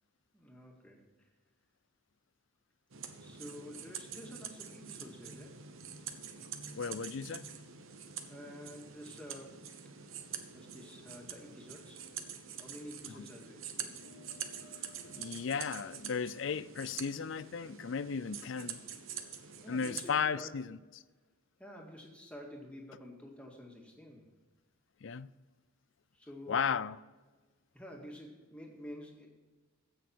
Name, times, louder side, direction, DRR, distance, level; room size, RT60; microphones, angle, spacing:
voice 1, 0.3-1.3 3.2-5.7 8.3-9.8 10.5-12.1 12.6-13.9 19.6-20.5 21.6-24.2 26.1-26.8 27.7-29.3, equal, 5° left, 2.0 m, -50 dB
sound 1, 2.9-20.2, right 8 dB, 75° right, 1.1 m, -46 dB
voice 2, 6.7-7.5 15.0-18.8 19.7-20.8 25.0-25.3 26.5-27.0, left 6 dB, 60° left, 0.4 m, -35 dB
sound 2, 13.8-18.6, left 3 dB, 85° left, 1.8 m, -62 dB
15.5 x 6.4 x 4.6 m
head